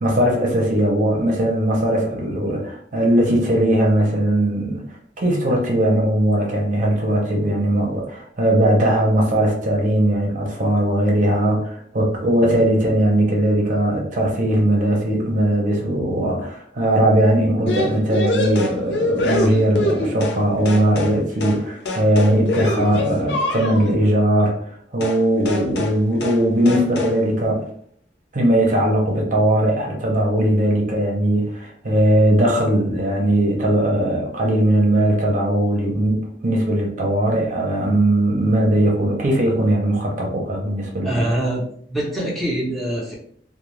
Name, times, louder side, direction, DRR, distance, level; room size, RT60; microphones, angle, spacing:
voice 1, 0.0-4.8 5.2-24.6 24.9-27.6 28.3-41.3, right 1 dB, 45° right, -1 dB, 0.7 m, -19 dB
sound 1, 17.7-20.4 20.7-21.2 21.4-21.6 21.9-23.9 25.0-25.2 25.5-26.0 26.2-26.4 26.7-27.2, left 2 dB, 75° left, 0.5 m, -24 dB
voice 2, 41.0-43.1, right 1 dB, ahead, -5 dB, 0.7 m, -24 dB
2.3 x 2.2 x 3.1 m, 0.62 s
head